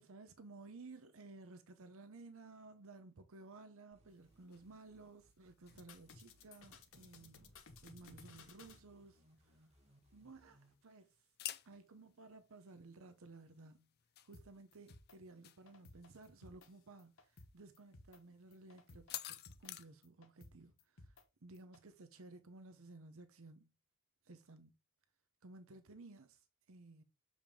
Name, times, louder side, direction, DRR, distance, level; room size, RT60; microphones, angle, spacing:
voice 1, 0.0-7.5 7.8-9.6 10.1-11.2 11.6-13.9 14.2-21.2 21.4-23.7 24.2-24.7 25.4-27.0, right 3 dB, 65° right, 0.8 m, -56 dB
sound 1, 3.9-10.7, right 1 dB, 30° right, 1.9 m, -70 dB
sound 2, 4.1-19.9, left 13 dB, 45° left, 0.5 m, -55 dB
sound 3, 5.7-8.8 14.3-14.4 14.7-15.2 15.5-16.7 17.0-17.5 17.7-18.2 18.5-19.7 20.0-21.2 21.5-21.8, left 3 dB, 65° left, 1.2 m, -59 dB
7.1 x 5.1 x 3.6 m
head